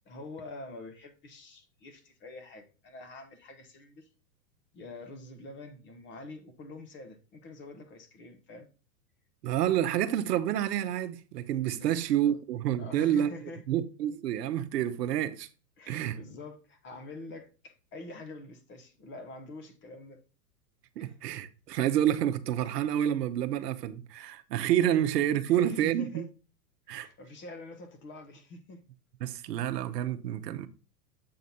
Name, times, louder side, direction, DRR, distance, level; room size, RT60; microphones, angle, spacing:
voice 1, 0.0-4.1 4.7-8.7 11.7-12.0 12.2-12.4 12.8-13.6 15.8-20.2 21.0-21.1 25.5-26.3 26.9-28.8, left 2 dB, 25° left, 0.9 m, -46 dB
voice 2, 9.4-15.5 15.9-16.2 21.0-26.2 26.9-27.1 29.2-30.7, right 11 dB, 70° right, 0.9 m, -29 dB
7.7 x 4.0 x 4.1 m
hypercardioid pair, 135°, 50 cm